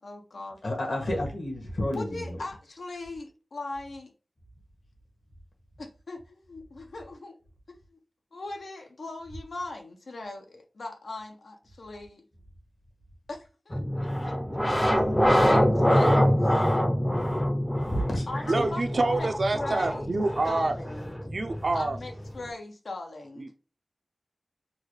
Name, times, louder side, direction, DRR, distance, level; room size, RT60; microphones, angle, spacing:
voice 1, 0.0-0.6 1.9-4.1 5.8-7.4 7.9-8.0 8.3-12.2 13.3-14.4 14.9-16.6 18.3-19.3 19.5-20.1 20.4-21.1 21.7-23.5, left 2 dB, 85° left, 0.6 m, -39 dB
voice 2, 0.6-2.4 17.9-18.6, left 1 dB, 65° left, 1.4 m, -30 dB
sound 1, 13.7-22.5, equal, 10° left, 0.5 m, -25 dB
voice 3, 18.5-20.8 21.3-22.0 23.4-23.6, right 2 dB, 65° right, 0.4 m, -27 dB
3.9 x 2.3 x 3.1 m
wide cardioid pair, 70°, 0 cm